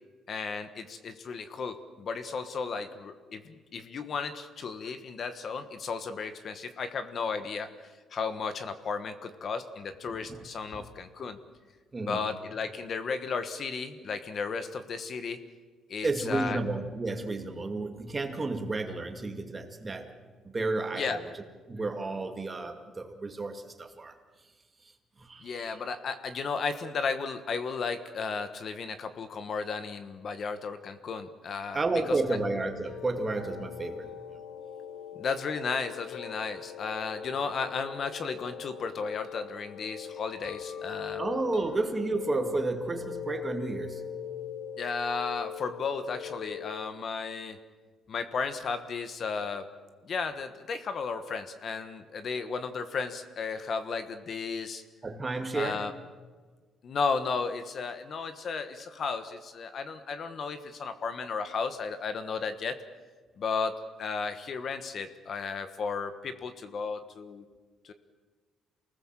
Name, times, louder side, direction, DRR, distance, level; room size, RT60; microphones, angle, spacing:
voice 1, 0.3-7.7 8.1-11.4 12.0-15.4 15.9-16.6 20.9-21.2 25.4-32.4 35.1-41.2 44.8-47.6 48.1-49.7 50.0-54.8 55.5-55.9 56.8-62.8 63.4-67.5 67.8-67.9, left 5 dB, 40° left, 1.3 m, -34 dB
voice 2, 11.9-12.3 16.0-20.2 20.4-21.4 21.7-24.2 25.2-25.5 31.7-34.4 41.2-44.1 55.0-55.9, right 3 dB, 20° right, 2.1 m, -32 dB
sound 1, 31.9-46.9, left 8 dB, 80° left, 1.8 m, -41 dB
29.0 x 19.5 x 7.5 m
cardioid pair, 160°, 0 cm